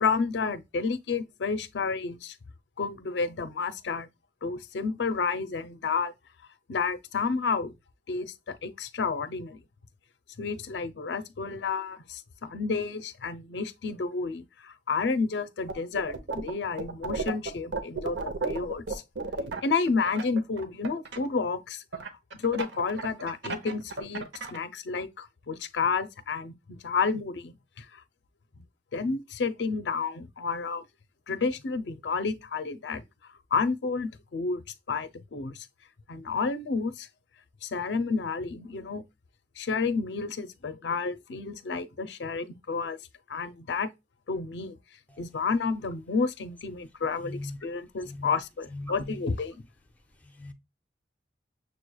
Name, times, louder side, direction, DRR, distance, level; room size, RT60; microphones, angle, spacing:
voice 1, 0.0-2.4 2.8-4.1 4.4-6.1 6.7-7.7 8.1-9.6 10.4-19.0 19.6-21.8 22.3-24.2 24.5-28.0 28.9-30.8 31.3-34.6 34.9-35.7 36.1-37.1 37.6-39.0 39.6-43.0 43.3-43.9 44.3-44.8 45.2-49.6, left 4 dB, 85° left, 0.5 m, -30 dB
sound 1, 15.7-16.5 16.8-21.2 21.9-24.6, right 3 dB, 90° right, 0.8 m, -33 dB
voice 2, 47.2-47.6 48.1-48.3 48.7-49.1 50.4-50.5, left 2 dB, 10° left, 0.5 m, -38 dB
6.7 x 3.1 x 2.2 m
head